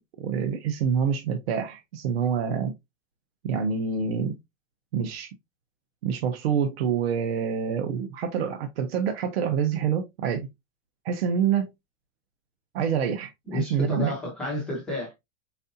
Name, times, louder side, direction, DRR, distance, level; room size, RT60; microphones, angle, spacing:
voice 1, 0.2-2.7 3.4-4.4 4.9-5.3 6.0-10.5 11.0-11.7 12.7-14.1, right 7 dB, 50° right, 0.7 m, -26 dB
voice 2, 13.5-15.1, left 2 dB, ahead, 0.5 m, -30 dB
4.6 x 4.1 x 2.6 m
supercardioid pair, 175°, 41 cm